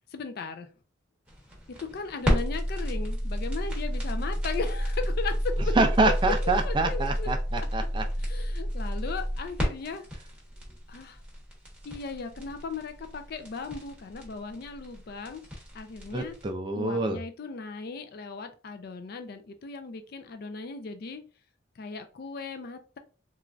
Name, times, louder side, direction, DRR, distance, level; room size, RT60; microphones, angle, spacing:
voice 1, 0.1-0.7 1.8-5.7 6.0-6.1 6.6-7.3 8.2-10.0 10.9-11.2 11.8-15.4 15.7-16.3 16.7-21.2 21.8-23.0, left 4 dB, 55° left, 8 dB, 0.4 m, -37 dB
sound 1, 1.3-16.4, equal, 5° right, 0.9 m, -30 dB
voice 2, 5.8-8.0 16.1-17.2, right 3 dB, 25° right, 5 dB, 0.3 m, -26 dB
3.1 x 2.3 x 2.4 m, 0.36 s
head